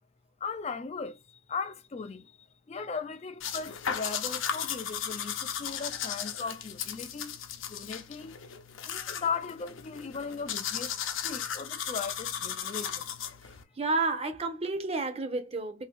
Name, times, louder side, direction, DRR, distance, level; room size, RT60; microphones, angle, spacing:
voice 1, 0.4-7.4 7.7-8.4 8.8-13.0, left 5 dB, 35° left, 0.3 m, -38 dB
sound 1, 3.4-13.6, left 8 dB, 90° left, 0.7 m, -36 dB
voice 2, 13.8-15.9, right 3 dB, 30° right, 0.6 m, -30 dB
2.7 x 2.7 x 3.3 m
head